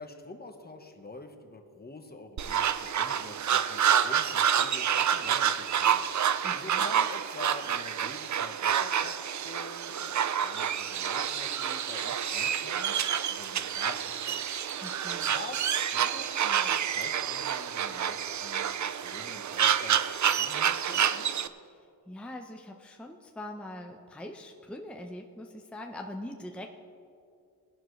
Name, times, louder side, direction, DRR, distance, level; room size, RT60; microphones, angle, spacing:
voice 1, 0.0-6.1 6.5-12.9 13.3-14.4 15.3-21.3, left 2 dB, 20° left, 5 dB, 1.1 m, -47 dB
sound 1, 2.4-21.5, right 9 dB, 45° right, 0.5 m, -28 dB
voice 2, 6.4-6.9 14.8-15.3 22.1-26.7, left 1 dB, 5° left, 2 dB, 0.7 m, -42 dB
19.5 x 11.5 x 3.2 m, 2.4 s
wide cardioid pair, 105°, 43 cm